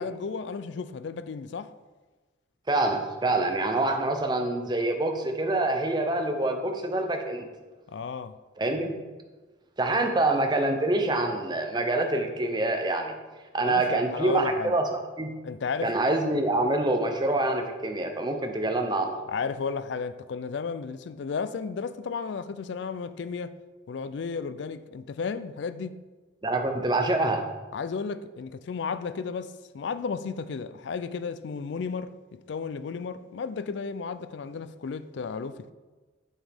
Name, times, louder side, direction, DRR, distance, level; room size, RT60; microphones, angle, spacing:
voice 1, 0.0-1.7 7.9-8.4 13.7-14.8 15.4-15.9 19.3-23.6 23.9-26.0 27.7-35.7, left 5 dB, 65° left, 0.4 m, -33 dB
voice 2, 2.7-7.5 8.6-9.0 9.8-13.1 13.5-15.4 15.8-19.2 26.4-27.5, right 2 dB, 20° right, 0.7 m, -26 dB
7.4 x 7.1 x 3.5 m
head